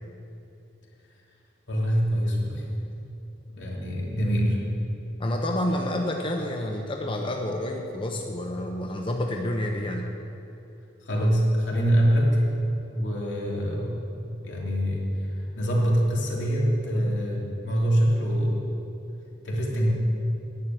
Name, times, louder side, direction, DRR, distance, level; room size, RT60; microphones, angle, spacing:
voice 1, 1.7-2.7 3.5-4.6 11.0-12.4 12.9-14.0 14.4-15.1 15.6-18.6 19.4-19.9, equal, 85° left, -3 dB, 2.8 m, -24 dB
voice 2, 5.2-10.1 16.9-17.1, left 1 dB, 30° left, 2 dB, 0.7 m, -29 dB
10.5 x 7.5 x 9.3 m, 2.9 s
head